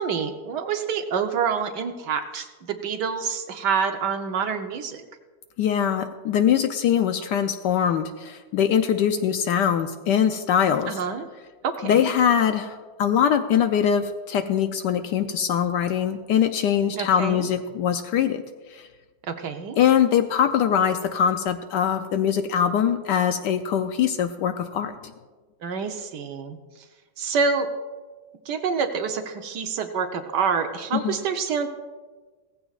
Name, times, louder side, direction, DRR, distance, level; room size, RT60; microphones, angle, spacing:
voice 1, 0.0-5.0 10.9-11.3 11.6-12.1 16.9-17.5 19.3-19.8 25.6-26.6 27.2-27.7 28.5-31.7, right 6 dB, 65° right, 6 dB, 1.3 m, -27 dB
voice 2, 5.6-11.0 11.8-18.4 18.7-18.9 19.8-25.1 30.9-31.2, left 8 dB, 70° left, 8 dB, 1.1 m, -22 dB
17.0 x 15.0 x 2.4 m, 1.4 s
omnidirectional pair, 2.2 m